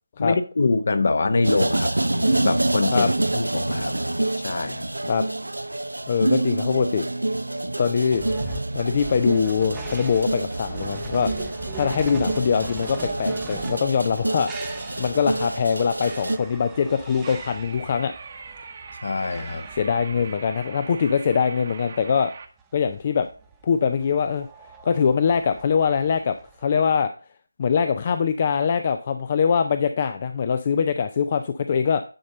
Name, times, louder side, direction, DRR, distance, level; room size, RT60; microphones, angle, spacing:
voice 1, 0.2-3.9 4.4-4.9 19.0-19.6, left 3 dB, 50° left, 1.1 m, -24 dB
sound 1, 1.4-16.4, right 2 dB, 80° right, 0.6 m, -27 dB
voice 2, 6.1-7.1 7.8-8.2 8.7-11.3 11.7-18.1 19.7-22.3 22.7-23.3 23.6-24.5 24.8-26.4 26.6-27.1 27.6-32.0, left 6 dB, 30° left, 0.5 m, -23 dB
sound 2, 8.1-26.6, right 5 dB, 10° right, 0.8 m, -41 dB
sound 3, 17.2-22.5, right 5 dB, 40° right, 1.1 m, -41 dB
10.0 x 5.3 x 3.9 m
figure-of-eight pair, 160°, 0 cm